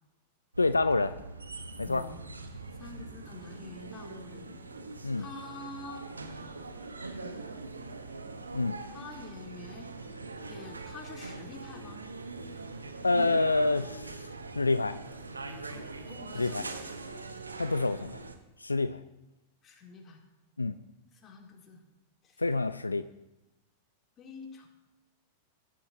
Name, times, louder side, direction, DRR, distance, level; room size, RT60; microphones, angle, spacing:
sound 1, 0.5-18.4, right 3 dB, 85° right, 1.1 m, -42 dB
voice 1, 0.6-1.1 1.8-2.0 5.0-5.2 8.5-8.8 13.0-14.3 14.6-15.0 16.3-16.6 17.6-18.2 18.6-19.0 20.6-20.7 22.4-23.1, left 3 dB, 90° left, 13 dB, 0.4 m, -27 dB
voice 2, 1.8-2.2 2.8-4.5 5.2-6.1 8.9-10.0 10.5-12.0 15.7-16.9 19.6-20.2 21.1-21.8 22.2-22.4 24.2-24.7, left 3 dB, 30° left, 0 dB, 3.1 m, -47 dB
18.0 x 11.5 x 2.9 m, 0.97 s
figure-of-eight pair, 95°, 0 cm